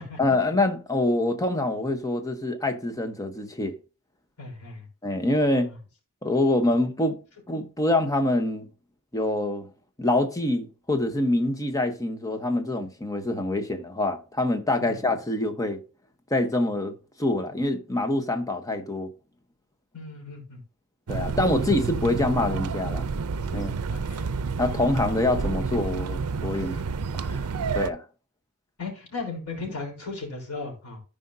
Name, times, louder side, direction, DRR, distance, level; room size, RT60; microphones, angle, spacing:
voice 1, 0.2-3.8 5.0-5.7 6.2-7.2 7.5-8.7 9.1-9.7 10.0-15.8 16.3-19.1 21.1-23.1 23.5-23.7 24.6-26.7 27.2-27.5 27.7-28.0, left 1 dB, 15° left, 1.0 m, -25 dB
voice 2, 4.4-4.9 5.6-5.8 14.8-14.9 19.9-20.6 21.7-21.8 23.5-24.3 26.5-27.0 28.8-31.0, left 3 dB, 90° left, 3.7 m, -37 dB
sound 1, 21.1-27.9, right 5 dB, 85° right, 0.5 m, -29 dB
13.5 x 5.1 x 2.7 m
head